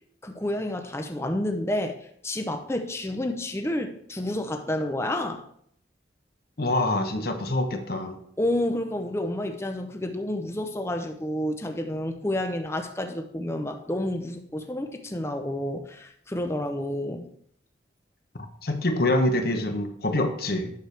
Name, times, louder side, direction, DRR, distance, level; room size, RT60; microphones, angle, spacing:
voice 1, 0.2-5.4 8.4-17.3, left 1 dB, 15° left, 5 dB, 0.6 m, -30 dB
voice 2, 6.6-8.2 18.6-20.7, left 1 dB, 55° left, 6 dB, 1.0 m, -25 dB
9.4 x 6.6 x 3.3 m, 0.66 s
head